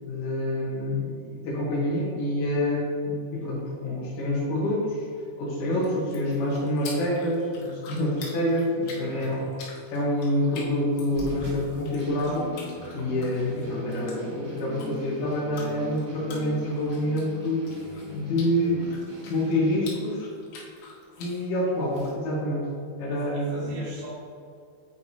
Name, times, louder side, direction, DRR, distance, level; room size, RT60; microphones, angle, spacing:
voice 1, 0.0-5.1 5.4-9.5 9.9-12.5 12.9-17.7 18.1-18.8 19.3-20.3 21.2-22.7 23.0-23.8, left 1 dB, 65° left, -8 dB, 2.3 m, -27 dB
voice 2, 1.7-2.0 8.8-9.4 23.1-24.1, right 2 dB, 65° right, -10 dB, 3.1 m, -42 dB
sound 1, 5.5-22.1, left 3 dB, 85° left, 3.3 m, -47 dB
sound 2, 11.1-19.8, equal, 85° right, 1.1 m, -40 dB
8.5 x 4.5 x 2.8 m, 2.4 s
omnidirectional pair, 4.8 m